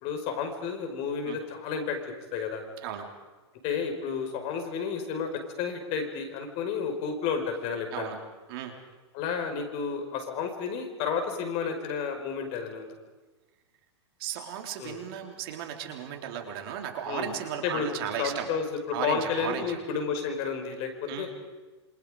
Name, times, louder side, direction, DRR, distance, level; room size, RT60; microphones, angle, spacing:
voice 1, 0.0-2.0 2.3-2.6 3.6-8.1 9.1-12.9 14.8-15.0 17.1-17.3 17.6-21.3, left 6 dB, 45° left, 5 dB, 5.1 m, -31 dB
voice 2, 14.2-18.5 18.9-19.8 21.1-21.3, right 9 dB, 55° right, 3 dB, 4.2 m, -35 dB
27.5 x 26.5 x 5.1 m, 1.3 s
hypercardioid pair, 125°, 14 cm